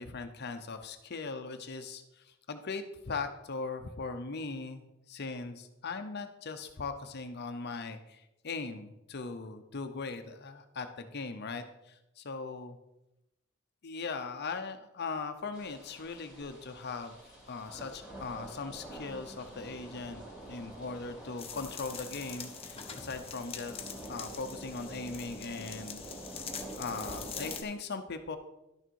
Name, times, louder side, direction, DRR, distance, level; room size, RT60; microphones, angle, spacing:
voice 1, 0.0-12.8 13.8-17.2 17.5-26.0 26.8-28.4, left 4 dB, 55° left, 7 dB, 0.7 m, -39 dB
sound 1, 15.5-27.6, right 1 dB, 5° right, 3.4 m, -47 dB
sound 2, 21.4-27.6, left 7 dB, 30° left, 1.0 m, -44 dB
11.5 x 6.5 x 4.6 m, 0.91 s
head